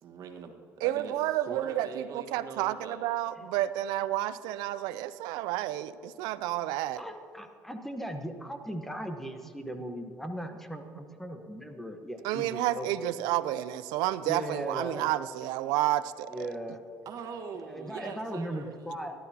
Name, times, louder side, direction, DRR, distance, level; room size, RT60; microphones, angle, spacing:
voice 1, 0.0-1.1 1.4-3.0 17.0-19.1, right 6 dB, 60° right, 4 dB, 1.6 m, -42 dB
voice 2, 0.8-7.0 12.2-16.5, right 14 dB, 85° right, 15 dB, 0.5 m, -30 dB
voice 3, 7.0-13.1 14.2-15.1 16.3-16.8 17.7-19.1, equal, 5° left, 5 dB, 1.2 m, -38 dB
17.5 x 12.0 x 2.9 m, 2.5 s
supercardioid pair, 90°, 7 cm